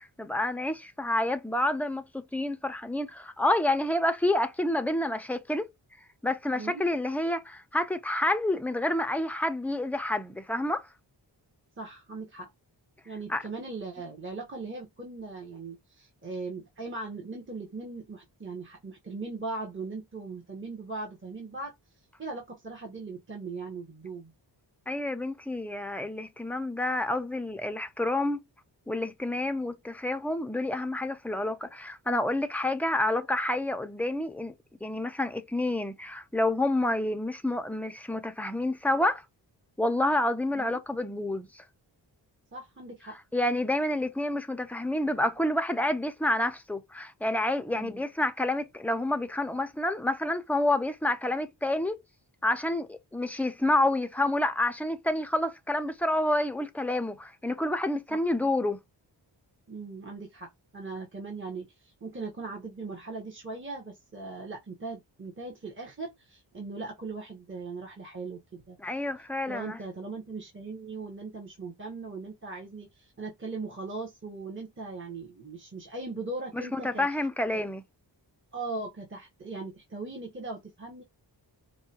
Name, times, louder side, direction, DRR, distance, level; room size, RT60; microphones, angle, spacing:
voice 1, 0.0-5.7 6.2-10.9 13.3-13.4 24.9-28.4 28.9-34.5 34.8-39.2 39.8-41.6 43.3-52.0 52.4-58.8 68.8-69.8 76.5-77.8, left 1 dB, 5° left, 0.5 m, -29 dB
voice 2, 11.8-12.5 13.0-21.7 22.2-24.3 40.5-40.8 42.5-43.2 47.7-48.0 58.1-58.2 59.7-68.8 69.5-77.1 78.5-81.0, right 3 dB, 25° right, 1.1 m, -39 dB
4.6 x 2.3 x 2.8 m
wide cardioid pair, 85°, 43 cm